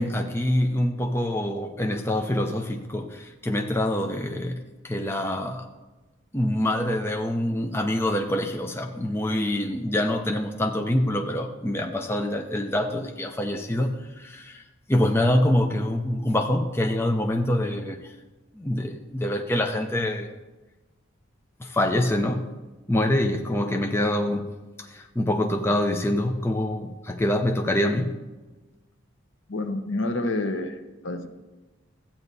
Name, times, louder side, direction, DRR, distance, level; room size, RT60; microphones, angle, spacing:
voice 1, 0.0-5.7 6.3-14.6 14.9-18.1 18.5-20.3 21.6-22.5 22.9-28.1, left 1 dB, 10° left, 3 dB, 0.5 m, -25 dB
voice 2, 29.5-31.3, left 2 dB, 65° left, 7 dB, 0.8 m, -28 dB
14.5 x 8.7 x 2.7 m, 1.2 s
head